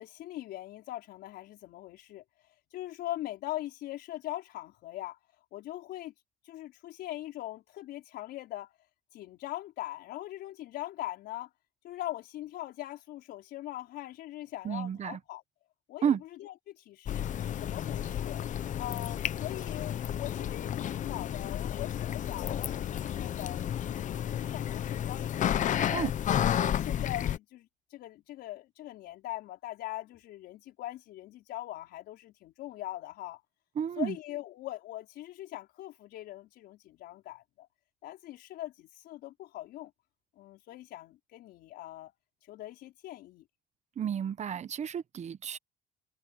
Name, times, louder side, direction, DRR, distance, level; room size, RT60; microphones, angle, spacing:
voice 1, 0.0-5.2 5.5-6.1 6.4-8.7 9.1-11.5 11.8-15.4 15.9-17.3 17.6-18.4 18.8-26.1 26.5-33.4 34.0-37.7 38.0-39.9 40.4-42.1 42.4-43.4, left 15 dB, 75° left, 4.7 m, -41 dB
voice 2, 14.6-15.2 16.0-16.2 25.9-26.1 33.8-34.1 44.0-45.6, right 8 dB, 40° right, 1.1 m, -31 dB
sound 1, 17.1-27.4, left 10 dB, 50° left, 0.8 m, -32 dB
cardioid pair, 110°, 17 cm